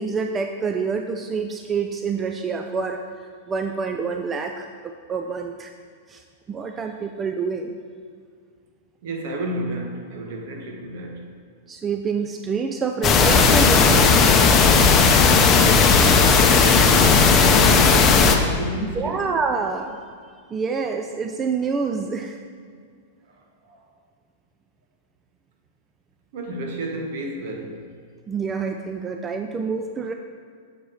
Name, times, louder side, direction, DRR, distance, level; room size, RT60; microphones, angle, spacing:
voice 1, 0.0-3.0 3.5-5.7 6.1-6.2 6.5-7.8 11.7-14.4 16.9-17.0 18.8-20.0 20.5-22.4 28.3-30.1, right 5 dB, 20° right, 5 dB, 0.4 m, -27 dB
voice 2, 9.0-11.3 16.3-19.3 23.3-23.4 23.7-23.8 26.3-27.9, right 1 dB, 65° right, 2 dB, 1.3 m, -31 dB
sound 1, 13.0-18.4, left 5 dB, 30° left, 0.7 m, -15 dB
6.6 x 4.7 x 6.2 m, 2.1 s
hypercardioid pair, 115°, 0 cm